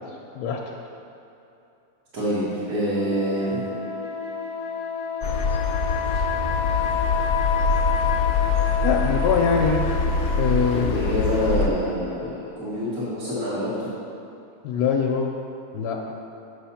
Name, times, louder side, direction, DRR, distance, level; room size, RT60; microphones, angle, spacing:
voice 1, 2.1-3.6 10.7-13.9, equal, 70° right, -11 dB, 1.9 m, -26 dB
sound 1, 2.8-12.5, left 7 dB, 10° right, 0.9 m, -30 dB
sound 2, 5.2-11.7, left 4 dB, 65° left, 0.8 m, -24 dB
voice 2, 8.8-9.8 10.4-11.0 14.6-15.3 15.7-16.0, left 6 dB, 85° left, 0 dB, 1.1 m, -22 dB
7.7 x 3.5 x 5.7 m, 2.9 s
omnidirectional pair, 1.6 m